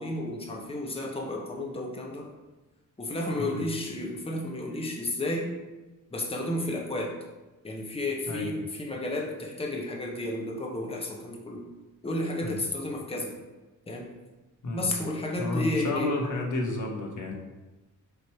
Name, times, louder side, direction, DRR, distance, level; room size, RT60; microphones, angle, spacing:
voice 1, 0.0-2.3 3.0-5.5 6.1-7.1 7.6-11.6 12.0-13.3 13.9-14.1 14.7-16.2, left 1 dB, 20° left, -1 dB, 0.9 m, -32 dB
voice 2, 15.4-17.3, left 2 dB, 65° left, 0 dB, 1.3 m, -31 dB
6.9 x 3.3 x 4.5 m, 1.1 s
wide cardioid pair, 120°, 32 cm